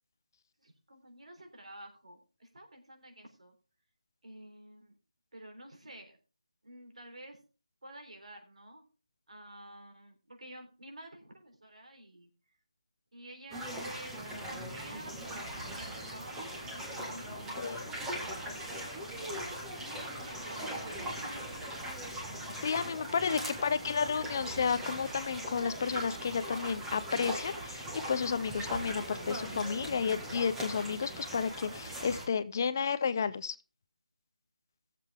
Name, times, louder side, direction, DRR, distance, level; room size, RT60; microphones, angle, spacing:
voice 1, 0.6-3.5 4.2-4.9 5.3-6.2 6.6-7.4 7.8-8.8 9.3-12.3 13.1-14.2 14.5-17.8 19.2-22.1 23.3-24.1, right 1 dB, 70° right, 3 dB, 3.7 m, -51 dB
sound 1, 13.5-32.3, right 1 dB, 5° right, 1.5 m, -40 dB
voice 2, 17.6-17.9 22.6-33.6, left 6 dB, 30° left, 14 dB, 0.4 m, -32 dB
17.0 x 7.5 x 3.5 m, 0.33 s
figure-of-eight pair, 165°, 4 cm